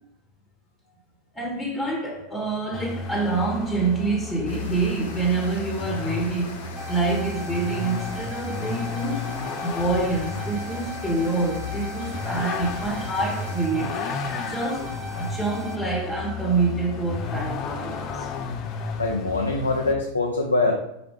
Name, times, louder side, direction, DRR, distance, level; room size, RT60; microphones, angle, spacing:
voice 1, 1.3-14.1 14.5-18.3, right 3 dB, 10° left, 1.2 m, -27 dB
Vehicle, 2.7-20.0, left 5 dB, 35° left, 0.6 m, -33 dB
sound 1, 4.5-13.7, left 3 dB, 60° left, 1.2 m, -42 dB
sound 2, 6.8-15.8, right 1 dB, 25° right, 0.9 m, -39 dB
voice 2, 19.0-20.7, left 3 dB, 80° left, 0.7 m, -23 dB
5.9 x 4.7 x 3.6 m
figure-of-eight pair, 90°, 0 cm